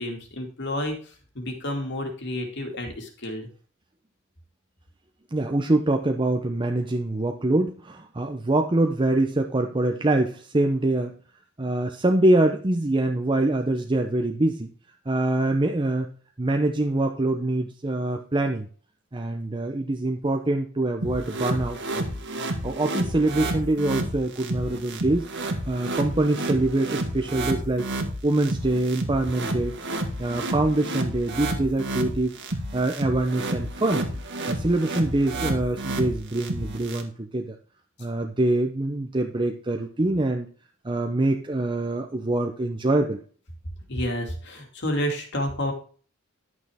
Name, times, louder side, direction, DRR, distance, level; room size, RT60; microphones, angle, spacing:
voice 1, 0.0-3.5 43.9-45.7, left 1 dB, 60° left, 3 dB, 2.4 m, -30 dB
voice 2, 5.3-11.2 11.6-14.7 15.1-16.1 16.4-18.7 19.1-22.0 22.3-27.9 28.2-29.7 30.2-32.3 32.7-34.0 34.5-37.6 38.0-40.5 40.8-43.2, right 2 dB, 25° right, 3 dB, 0.7 m, -24 dB
sound 1, 21.0-37.0, right 1 dB, 60° right, 1.7 m, -30 dB
11.5 x 6.3 x 3.6 m, 0.43 s
head